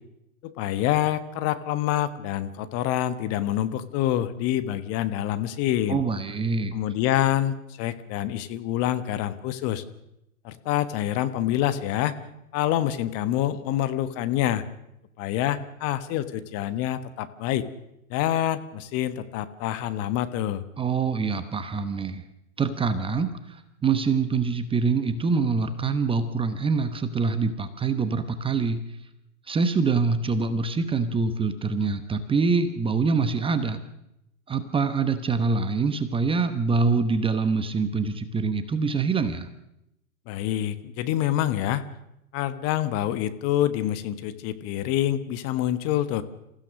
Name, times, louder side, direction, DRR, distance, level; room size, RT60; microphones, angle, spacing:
voice 1, 0.4-6.0 6.7-9.8 10.4-12.1 12.5-14.6 15.2-17.6 18.1-20.6 40.3-41.8 42.3-46.2, left 12 dB, 35° left, 12 dB, 1.3 m, -26 dB
voice 2, 5.9-6.7 20.8-22.2 22.6-28.8 29.5-33.8 34.5-39.5, right 4 dB, 10° right, 11 dB, 1.1 m, -25 dB
26.5 x 15.5 x 6.4 m, 0.85 s
hypercardioid pair, 115°, 43 cm